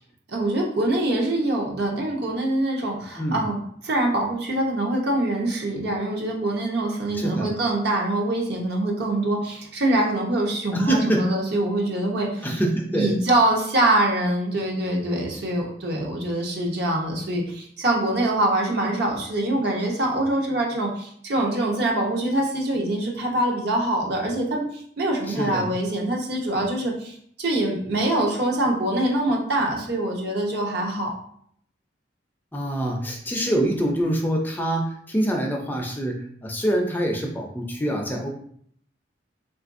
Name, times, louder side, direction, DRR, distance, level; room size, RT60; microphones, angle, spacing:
voice 1, 0.3-12.6 12.9-24.7 25.0-31.1, right 1 dB, 65° right, -1 dB, 0.8 m, -24 dB
voice 2, 7.1-7.5 10.7-11.3 12.4-13.2 25.3-25.8 32.5-38.3, right 1 dB, 10° left, 1 dB, 0.4 m, -25 dB
3.8 x 2.4 x 2.5 m, 0.64 s
head